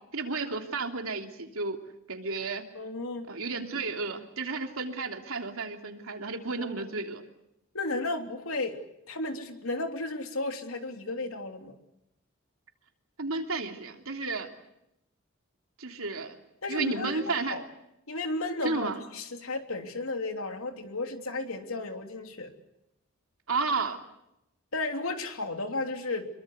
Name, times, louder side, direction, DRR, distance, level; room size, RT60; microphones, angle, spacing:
voice 1, 0.1-1.8 2.1-2.6 3.3-7.2 13.2-14.5 15.8-16.3 16.7-17.5 18.6-19.0 23.5-24.0, right 4 dB, 90° right, 4 dB, 3.1 m, -32 dB
voice 2, 2.7-3.3 6.6-6.9 7.7-8.8 9.1-11.7 16.6-17.6 18.1-22.5 24.7-26.3, left 2 dB, 90° left, 5 dB, 3.3 m, -34 dB
26.5 x 23.0 x 8.1 m, 0.84 s
head